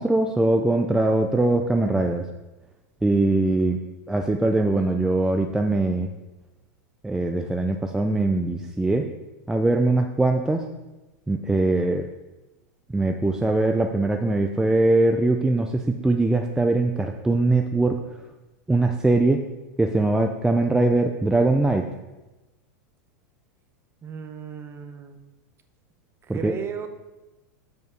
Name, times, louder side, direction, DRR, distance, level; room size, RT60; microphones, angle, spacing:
voice 1, 0.0-2.2 3.0-3.8 4.1-6.1 7.0-9.1 9.5-10.7 11.3-12.0 12.9-18.0 18.7-19.4 19.8-21.8 26.3-26.5, right 2 dB, 5° right, 4 dB, 0.5 m, -21 dB
voice 2, 24.0-25.2 26.2-26.9, right 7 dB, 25° right, 7 dB, 0.9 m, -35 dB
7.2 x 5.1 x 6.3 m, 1.1 s
hypercardioid pair, 120°, 9 cm